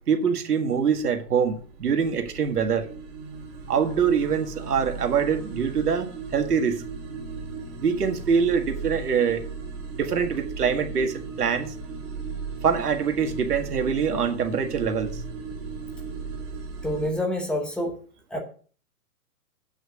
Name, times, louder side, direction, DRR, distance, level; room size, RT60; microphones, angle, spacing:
voice 1, 0.1-2.9 3.7-6.8 7.8-9.4 9.9-11.7 12.6-15.1, right 6 dB, 75° right, 1.9 m, -24 dB
sound 1, 1.3-17.1, right 4 dB, 25° right, 2.7 m, -37 dB
voice 2, 16.8-17.9 18.3-18.4, left 1 dB, ahead, 1.1 m, -27 dB
8.7 x 6.3 x 6.4 m
hypercardioid pair, 150°, 46 cm